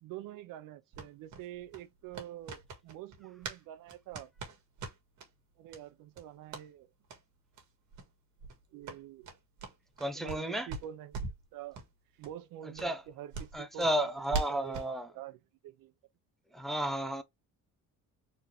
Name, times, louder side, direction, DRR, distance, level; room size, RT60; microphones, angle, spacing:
voice 1, 0.0-4.3 5.6-6.9 8.7-9.3 10.1-11.8 12.2-13.9 14.3-15.9, right 12 dB, 85° right, 0.7 m, -47 dB
sound 1, 0.9-3.6 3.9-5.3 5.7-5.8 6.1-6.7 7.0-7.2 7.5-7.6 7.9-8.1 8.4-10.4 10.7-11.4 11.7-11.9 12.2-12.3 12.7-14.9, right 4 dB, 60° right, 1.7 m, -41 dB
voice 2, 10.0-10.7 12.6-13.0 13.5-15.1 16.5-17.2, right 1 dB, ahead, 0.5 m, -33 dB
4.1 x 3.2 x 2.7 m
cardioid pair, 150°, 32 cm